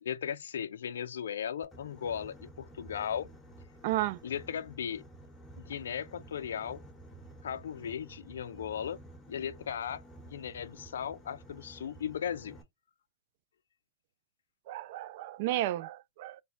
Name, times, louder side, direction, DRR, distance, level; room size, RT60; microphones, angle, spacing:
voice 1, 0.0-3.3 4.2-5.0 5.6-6.8 7.4-9.0 9.3-10.0 10.3-12.6, left 8 dB, 85° left, 0.3 m, -37 dB
Boat Water vehicle, 1.6-12.6, right 1 dB, 15° left, 1.0 m, -52 dB
voice 2, 3.8-4.2 14.7-16.4, right 15 dB, 55° right, 0.3 m, -33 dB
3.2 x 2.1 x 3.7 m
hypercardioid pair, 125°, 0 cm